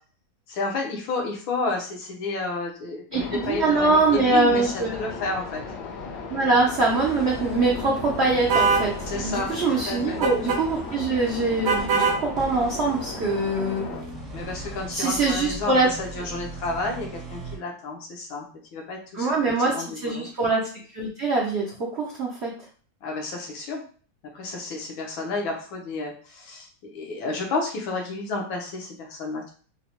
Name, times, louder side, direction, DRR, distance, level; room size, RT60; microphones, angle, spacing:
voice 1, 0.5-5.6 9.1-9.6 9.9-10.2 14.3-19.3 19.7-20.3 23.0-23.8 24.3-29.5, left 3 dB, 85° left, 0 dB, 1.7 m, -31 dB
sound 1, 3.1-14.0, left 4 dB, 70° left, 1.2 m, -36 dB
voice 2, 3.1-5.0 6.3-13.9 14.9-15.9 19.1-22.5, right 3 dB, 80° right, -3 dB, 0.6 m, -23 dB
sound 2, 6.8-17.6, right 1 dB, 35° right, 0.5 m, -38 dB
sound 3, 8.5-8.9 10.2-10.6 11.7-12.2, right 5 dB, 60° right, 1.0 m, -21 dB
4.3 x 2.1 x 2.9 m, 0.42 s
omnidirectional pair, 2.1 m